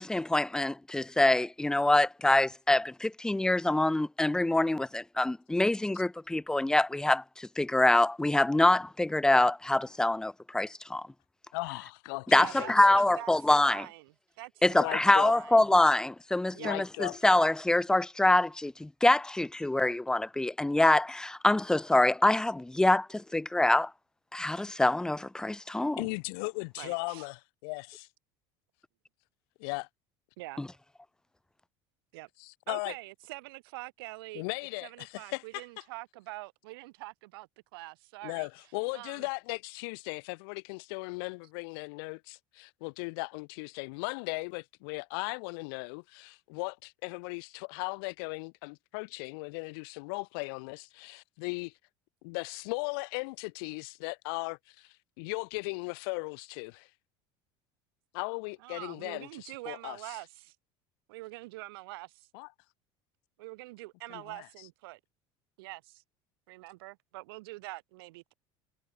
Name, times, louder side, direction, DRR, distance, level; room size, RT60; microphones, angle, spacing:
voice 1, 0.0-11.1 12.3-13.8 14.6-23.9 24.3-26.0 30.6-30.7, left 2 dB, 5° left, 0.5 m, -25 dB
voice 2, 11.5-13.0 14.7-15.3 16.6-17.2 26.0-27.9 29.6-29.8 32.4-32.9 34.3-35.4 38.2-51.7 52.2-56.9 58.1-60.0 62.3-62.5 64.1-64.5, left 31 dB, 80° left, 1.2 m, -37 dB
voice 3, 12.3-15.6 16.5-16.7 26.8-27.3 30.4-30.6 32.1-32.3 32.7-34.4 34.8-38.5 38.9-39.3 58.6-60.5 61.1-62.3 63.4-65.0 65.6-66.0 66.5-68.3, right 21 dB, 85° right, 2.9 m, -45 dB
supercardioid pair, 115°, 12 cm